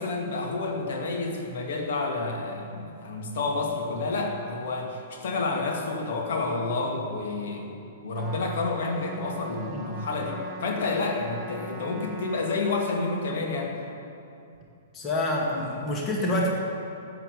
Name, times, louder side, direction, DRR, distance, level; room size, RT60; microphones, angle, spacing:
voice 1, 0.0-13.7, left 3 dB, 50° left, 1 dB, 2.4 m, -29 dB
Trumpet, 8.1-12.6, right 2 dB, 10° right, 1.5 m, -41 dB
voice 2, 14.9-16.5, left 1 dB, 20° left, -2 dB, 2.3 m, -27 dB
14.0 x 9.3 x 7.2 m, 2.7 s
figure-of-eight pair, 110°, 0 cm